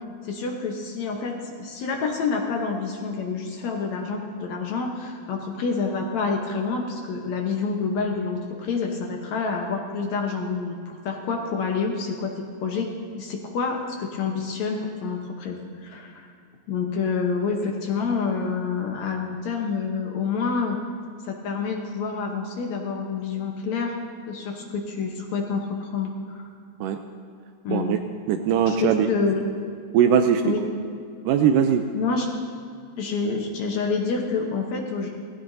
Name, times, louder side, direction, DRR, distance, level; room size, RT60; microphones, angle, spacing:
voice 1, 0.2-12.3 12.6-12.9 13.1-16.3 16.7-20.8 21.2-23.9 24.3-26.4 27.6-28.0 28.6-29.5 30.4-30.7 31.9-32.3 33.0-35.1, left 4 dB, 70° left, 1 dB, 1.8 m, -28 dB
voice 2, 28.3-29.1 29.9-30.4 31.3-31.8, right 8 dB, 90° right, 6 dB, 1.9 m, -20 dB
18.0 x 16.5 x 2.7 m, 2.3 s
omnidirectional pair, 4.4 m